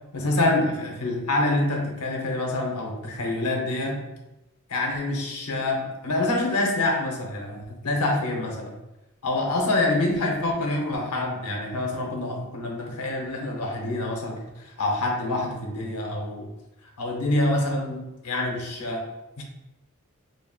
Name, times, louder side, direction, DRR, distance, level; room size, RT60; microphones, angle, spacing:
voice 1, 0.1-4.1 4.7-8.7 9.2-16.5 17.0-19.1 19.4-19.5, left 2 dB, 85° left, 0 dB, 0.8 m, -26 dB
4.4 x 2.9 x 2.3 m, 0.94 s
head